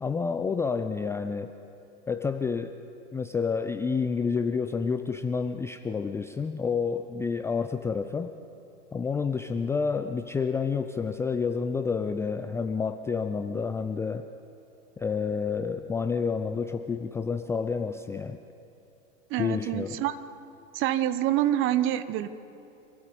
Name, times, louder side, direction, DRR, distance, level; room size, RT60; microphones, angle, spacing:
voice 1, 0.0-1.5 2.1-2.8 3.1-8.3 8.9-14.3 15.0-18.4 19.4-20.0, left 5 dB, 10° left, 8 dB, 0.4 m, -29 dB
voice 2, 19.3-20.2 20.7-22.3, right 12 dB, 35° right, 13 dB, 1.2 m, -26 dB
27.0 x 15.5 x 7.2 m, 2.8 s
figure-of-eight pair, 90°, 36 cm